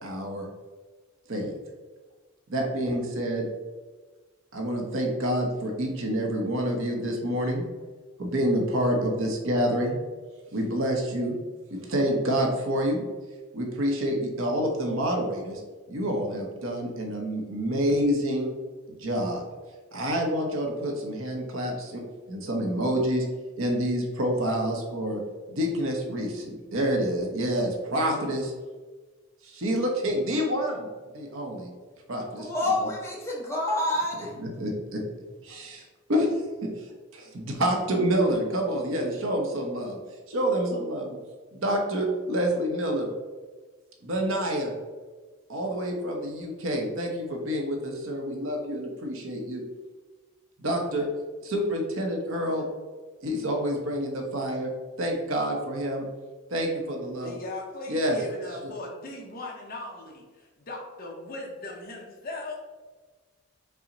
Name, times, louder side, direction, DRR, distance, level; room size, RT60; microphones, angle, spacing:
voice 1, 0.0-0.5 1.3-1.5 2.5-3.5 4.5-7.6 8.2-10.0 10.5-11.4 11.7-13.0 13.5-15.6 15.9-18.5 18.9-19.4 19.9-22.0 22.3-23.2 23.6-25.2 25.5-28.5 29.4-30.9 31.1-31.7 32.1-32.9 34.4-35.0 35.4-35.8 36.1-36.9 37.1-40.0 40.3-41.2 41.5-43.1 44.0-44.8 45.5-49.6 50.6-51.1 51.4-52.7 53.2-54.7 55.0-56.0 56.5-57.4 57.9-58.2 58.6-58.7, equal, 70° right, 1 dB, 0.7 m, -28 dB
voice 2, 32.4-34.3, left 1 dB, 15° left, -4 dB, 0.8 m, -28 dB
voice 3, 57.2-62.7, left 2 dB, 45° left, -1 dB, 0.7 m, -38 dB
5.6 x 2.1 x 3.8 m, 1.3 s
head